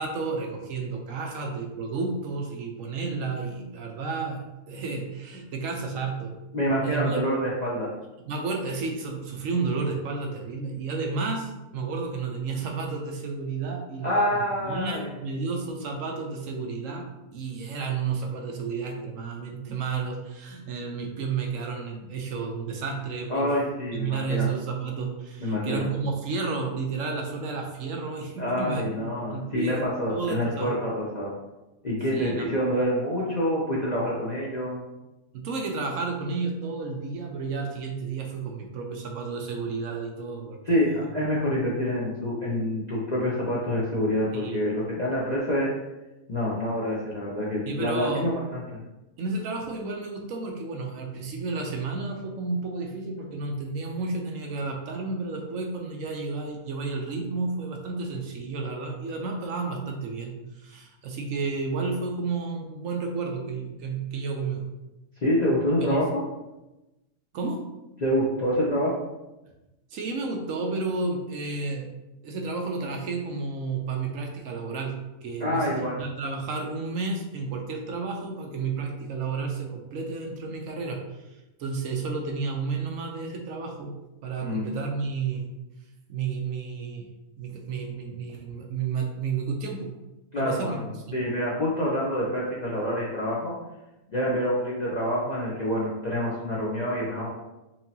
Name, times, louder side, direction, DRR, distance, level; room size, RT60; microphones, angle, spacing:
voice 1, 0.0-6.3 6.8-7.2 8.3-17.1 17.3-23.6 23.9-29.8 30.1-30.7 32.1-32.5 35.3-41.1 44.3-44.6 47.7-48.3 49.2-64.6 65.8-66.0 67.3-67.6 69.9-71.9 72.2-84.0 84.2-85.5 86.1-87.1 87.4-89.9 90.3-90.8 91.1-91.2, right 4 dB, 70° right, 2 dB, 0.9 m, -31 dB
voice 2, 6.5-7.9 14.0-15.1 23.3-24.5 25.4-25.9 28.4-31.3 31.8-34.8 40.7-45.7 46.3-48.8 65.2-66.2 68.0-68.9 75.4-76.0 84.4-84.7 90.3-90.8 91.1-93.6 94.1-97.3, equal, 45° left, -6 dB, 0.5 m, -27 dB
4.4 x 2.8 x 2.7 m, 0.99 s
omnidirectional pair, 1.5 m